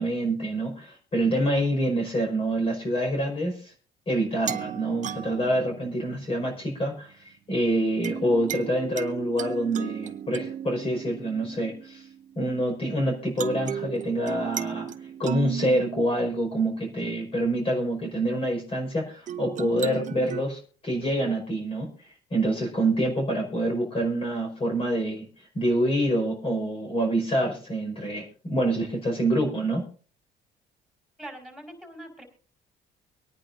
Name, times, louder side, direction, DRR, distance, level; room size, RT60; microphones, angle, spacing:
voice 1, 0.0-3.7 4.1-12.1 12.4-14.9 15.2-25.3 25.6-29.8, right 1 dB, 35° left, 1 dB, 5.2 m, -26 dB
sound 1, 4.4-6.7 8.0-12.8 13.4-17.5 19.3-20.4, right 9 dB, 45° right, 0.7 m, -36 dB
voice 2, 31.2-32.2, right 1 dB, 5° left, 2 dB, 4.7 m, -42 dB
24.5 x 9.8 x 2.6 m, 0.40 s
cardioid pair, 110°, 17 cm